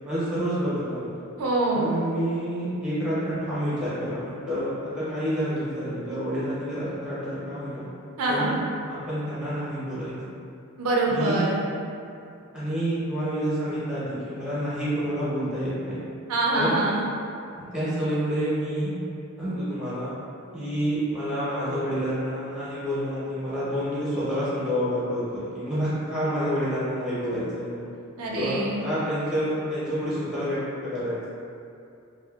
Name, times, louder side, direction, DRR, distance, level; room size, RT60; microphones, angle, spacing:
voice 1, 0.0-1.1 1.7-7.8 8.3-8.6 8.9-10.3 11.1-11.5 12.5-16.0 16.5-16.7 17.6-19.0 19.4-20.1 20.5-27.9 28.3-31.3, equal, 5° right, -11 dB, 0.7 m, -28 dB
voice 2, 1.4-1.9 8.2-8.5 10.8-11.6 16.3-17.0 28.2-28.8, right 2 dB, 80° right, -3 dB, 0.4 m, -24 dB
2.7 x 2.3 x 2.2 m, 2.6 s
head